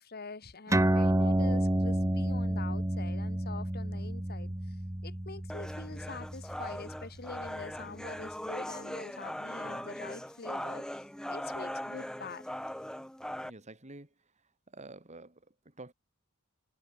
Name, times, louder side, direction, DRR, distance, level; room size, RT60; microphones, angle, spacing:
voice 1, 0.0-4.8 5.0-12.5, left 4 dB, 45° left, 1.7 m, -45 dB
sound 1, 0.7-7.6, right 1 dB, 15° right, 0.8 m, -30 dB
sound 2, 5.5-13.5, equal, 5° left, 1.5 m, -40 dB
voice 2, 9.6-10.0 13.4-14.1 14.7-15.9, right 2 dB, 35° right, 3.5 m, -49 dB
head